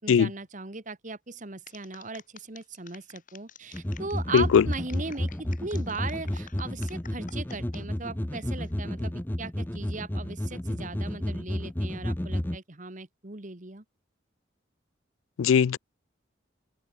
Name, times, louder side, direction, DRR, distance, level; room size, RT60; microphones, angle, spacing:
voice 1, 0.0-5.3 5.6-13.8, right 3 dB, 40° right, 1.5 m, -38 dB
sound 1, 1.7-7.8 8.3-8.7, left 7 dB, 45° left, 4.5 m, -50 dB
sound 2, 3.7-12.6, left 1 dB, 10° left, 0.6 m, -32 dB
voice 2, 4.3-4.6 15.4-15.8, left 7 dB, 90° left, 0.4 m, -19 dB
open air
head